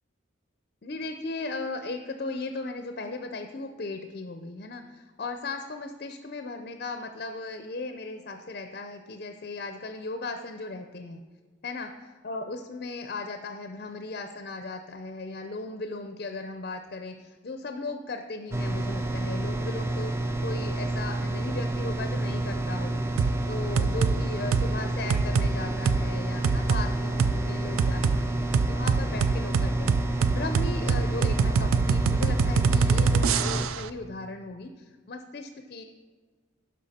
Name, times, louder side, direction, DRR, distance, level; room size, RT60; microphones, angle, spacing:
voice 1, 0.8-11.2 11.6-35.8, left 3 dB, 45° left, 6 dB, 0.5 m, -37 dB
sound 1, 18.5-33.7, right 2 dB, 15° right, 0.4 m, -29 dB
sound 2, 23.2-23.4 23.8-24.2 24.5-24.7 25.1-25.5 25.9-26.0 26.4-26.8 27.2-27.3 27.8-28.2 28.5-33.8, right 5 dB, 85° right, 0.4 m, -23 dB
11.5 x 5.4 x 4.2 m, 1.4 s
head